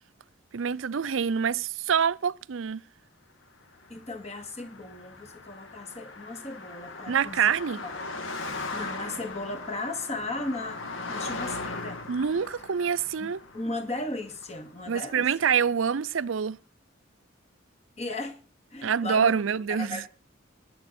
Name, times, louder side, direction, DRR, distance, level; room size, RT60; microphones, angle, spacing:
voice 1, 0.5-2.8 7.1-7.8 12.1-13.4 14.9-16.6 18.8-20.0, right 7 dB, 85° right, 0.5 m, -26 dB
Car passing by, 3.8-15.3, left 3 dB, 85° left, 2.2 m, -39 dB
voice 2, 3.9-7.6 8.7-12.0 13.2-13.3 13.5-15.3 18.0-18.4 18.7-19.3 19.7-20.1, left 2 dB, 35° left, 2.2 m, -36 dB
20.0 x 7.7 x 4.3 m
head